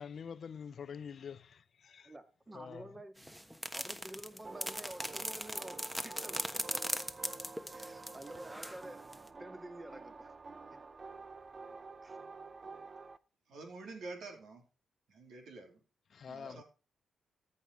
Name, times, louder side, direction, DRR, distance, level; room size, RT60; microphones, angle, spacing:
voice 1, 0.0-2.1 2.5-2.9 16.1-16.6, left 7 dB, 60° left, 0.6 m, -46 dB
voice 2, 2.0-3.1 3.7-7.0 7.7-9.0 9.3-10.3 12.0-12.2 16.4-16.6, right 1 dB, 25° right, 2.3 m, -50 dB
sound 1, 3.2-8.9 9.1-9.3, equal, 5° right, 1.3 m, -39 dB
sound 2, 4.4-13.2, right 3 dB, 40° right, 0.7 m, -49 dB
voice 3, 13.5-14.6 15.1-15.8 16.3-16.6, right 3 dB, 75° right, 3.3 m, -48 dB
13.5 x 5.6 x 4.7 m
supercardioid pair, 50°, 0 cm